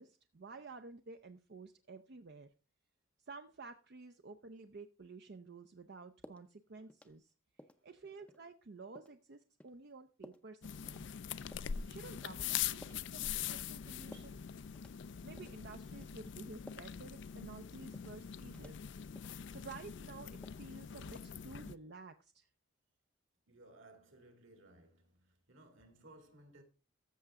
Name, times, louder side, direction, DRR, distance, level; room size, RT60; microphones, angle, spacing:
voice 1, 0.0-2.5 3.2-7.3 7.8-11.1 11.9-14.4 15.2-18.8 19.5-22.5, right 3 dB, 50° right, 0.5 m, -52 dB
sound 1, 6.2-6.5 6.9-7.3 7.6-7.8 8.3-8.4 9.0-9.2 9.6-9.7 10.2-10.5 10.9-11.1 11.5-11.7 12.2-12.5 12.8-13.0 13.5-13.8 14.1-14.4 14.7-15.1 15.4-15.6 16.0-16.2 16.7-17.0 17.3-17.5 17.9-18.2 18.5-18.8 19.2-19.4 19.7-20.1 20.4-20.7 21.0-21.2, left 1 dB, 5° left, 0.5 m, -56 dB
sound 2, 10.6-21.8, left 9 dB, 55° left, 0.4 m, -43 dB
voice 2, 23.5-26.6, right 2 dB, 65° right, 2.3 m, -61 dB
14.0 x 6.7 x 3.6 m
head